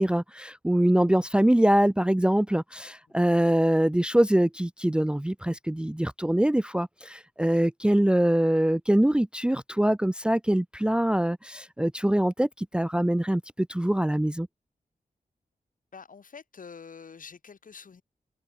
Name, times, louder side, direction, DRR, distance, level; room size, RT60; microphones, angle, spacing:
voice 1, 0.0-14.5, right 1 dB, 5° right, 0.6 m, -24 dB
voice 2, 15.9-18.0, left 5 dB, 65° left, 5.3 m, -46 dB
wide cardioid pair, 135°, 15 cm